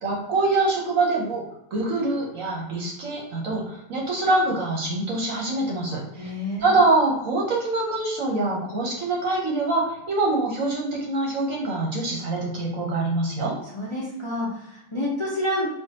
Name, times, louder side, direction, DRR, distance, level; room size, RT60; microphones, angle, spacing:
voice 1, 0.0-1.4 1.7-6.3 6.6-13.5, right 2 dB, 60° right, -2 dB, 1.0 m, -24 dB
voice 2, 6.2-6.8 13.7-15.7, left 1 dB, 35° left, -6 dB, 0.5 m, -28 dB
4.5 x 2.6 x 2.8 m, 0.80 s
omnidirectional pair, 1.9 m